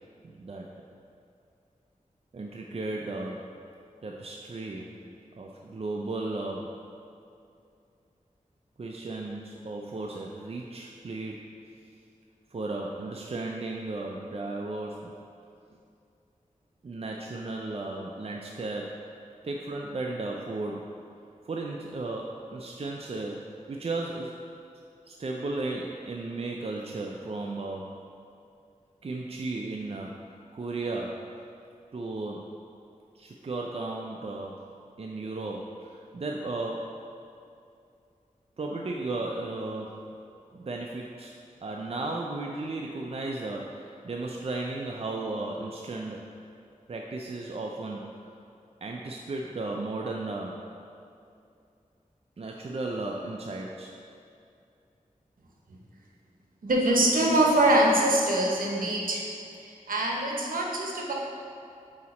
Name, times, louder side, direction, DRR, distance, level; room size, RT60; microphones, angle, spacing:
voice 1, 0.2-0.7 2.3-3.5 4.0-5.0 5.4-6.8 8.8-11.8 12.5-15.1 16.8-19.1 19.4-21.0 21.4-24.3 25.1-27.9 29.0-30.2 30.5-31.3 31.9-32.5 33.1-34.6 35.0-37.0 38.6-40.0 40.5-46.3 46.9-48.3 48.8-50.7 52.4-53.9, right 2 dB, 45° right, 0 dB, 0.4 m, -35 dB
voice 2, 56.6-59.3 59.6-61.1, right 1 dB, 85° right, -2 dB, 0.9 m, -24 dB
8.3 x 2.8 x 4.1 m, 2.5 s
cardioid pair, 50°, 14 cm